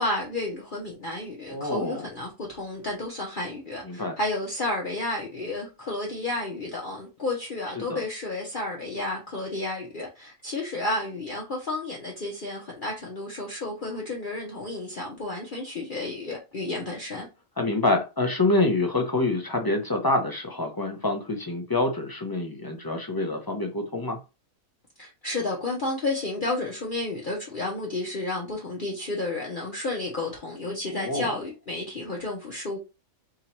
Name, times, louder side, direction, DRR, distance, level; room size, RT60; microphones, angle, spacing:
voice 1, 0.0-17.3 25.0-32.8, left 2 dB, 40° left, 1.0 m, -31 dB
voice 2, 1.5-2.0 3.8-4.1 7.7-8.0 17.6-24.2 30.9-31.3, left 2 dB, 20° left, 0.7 m, -26 dB
3.7 x 2.8 x 4.4 m
omnidirectional pair, 1.5 m